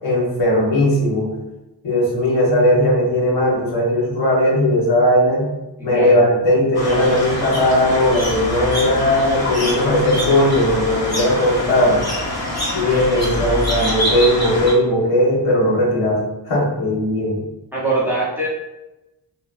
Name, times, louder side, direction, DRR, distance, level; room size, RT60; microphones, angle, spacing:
voice 1, 0.0-1.3 1.8-5.5 5.8-12.0 12.7-17.4, left 1 dB, 85° left, -4 dB, 0.9 m, -17 dB
voice 2, 5.8-6.2 17.7-18.5, right 2 dB, 5° right, -7 dB, 0.6 m, -22 dB
sound 1, 6.7-14.7, left 1 dB, 35° left, 0.9 m, -24 dB
2.7 x 2.1 x 2.3 m, 0.97 s
wide cardioid pair, 140°, 43 cm